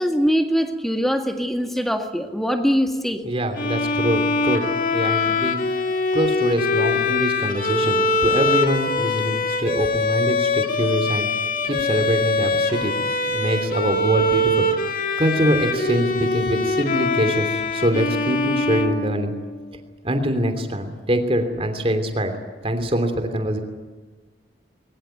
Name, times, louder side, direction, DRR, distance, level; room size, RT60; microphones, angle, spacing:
voice 1, 0.0-3.2, equal, ahead, 5 dB, 1.9 m, -22 dB
voice 2, 3.2-4.6 4.9-5.6 6.1-11.3 11.6-12.9 13.3-14.7 14.9-19.3 20.0-22.3 22.6-23.6, equal, 30° right, 7 dB, 3.0 m, -24 dB
Bowed string instrument, 3.6-19.6, left 2 dB, 50° left, 2.1 m, -23 dB
22.0 x 21.0 x 9.3 m, 1.4 s
head